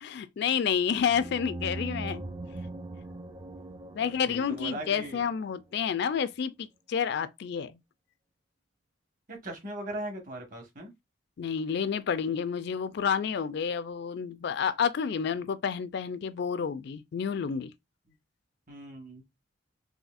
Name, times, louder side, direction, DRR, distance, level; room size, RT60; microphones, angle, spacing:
voice 1, 0.0-2.2 3.9-7.8 11.4-17.7, left 7 dB, 60° left, 0.4 m, -30 dB
sound 1, 1.0-5.6, right 2 dB, 25° right, 0.4 m, -40 dB
voice 2, 4.0-5.3 9.3-10.9 18.7-19.2, right 1 dB, 45° right, 1.2 m, -40 dB
4.1 x 2.7 x 2.4 m
head